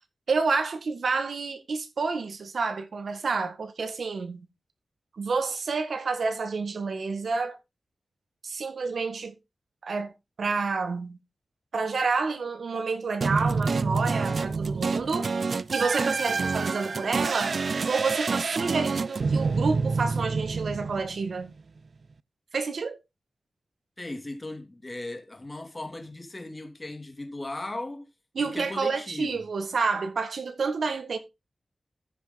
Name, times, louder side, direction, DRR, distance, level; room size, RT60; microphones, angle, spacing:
voice 1, 0.3-4.5 5.1-7.6 8.4-9.3 9.8-10.1 10.4-11.2 11.7-15.3 15.7-17.6 17.9-21.5 22.5-23.0 28.3-31.2, right 4 dB, 80° right, 1.7 m, -29 dB
sound 1, 13.2-21.4, right 4 dB, 65° right, 0.5 m, -27 dB
voice 2, 24.0-28.1 28.4-29.3, left 2 dB, 30° left, 2.7 m, -37 dB
14.0 x 5.9 x 3.8 m
wide cardioid pair, 85°, 0 cm